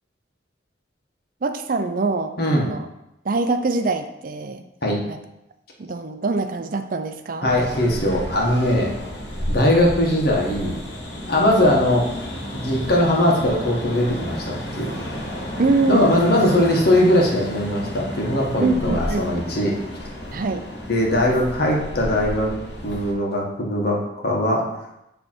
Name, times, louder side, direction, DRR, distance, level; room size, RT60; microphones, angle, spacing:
voice 1, 1.4-2.9 3.2-4.6 5.1-5.2 5.8-7.5 15.6-16.1 18.6-19.3 20.3-20.6, right 3 dB, 50° right, 8 dB, 0.5 m, -24 dB
voice 2, 2.4-2.7 4.8-5.0 7.4-9.0 9.5-10.8 11.3-12.0 12.5-14.9 15.9-19.7 20.9-22.5 22.8-24.6, left 1 dB, 60° left, -2 dB, 1.4 m, -20 dB
sound 1, 7.5-23.1, equal, 75° left, 1.5 m, -32 dB
8.7 x 3.3 x 4.4 m, 0.88 s
head